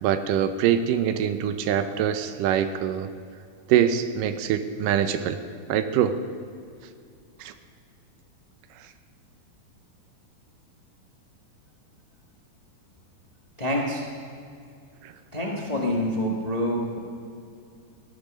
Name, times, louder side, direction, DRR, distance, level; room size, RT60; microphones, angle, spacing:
voice 1, 0.0-3.1 3.7-5.4 5.7-6.2 7.4-7.5 15.0-15.1, right 9 dB, 80° right, 10 dB, 2.2 m, -24 dB
voice 2, 13.6-14.0 15.3-17.0, left 1 dB, 90° left, -1 dB, 0.3 m, -26 dB
17.0 x 12.0 x 6.2 m, 2.4 s
omnidirectional pair, 4.1 m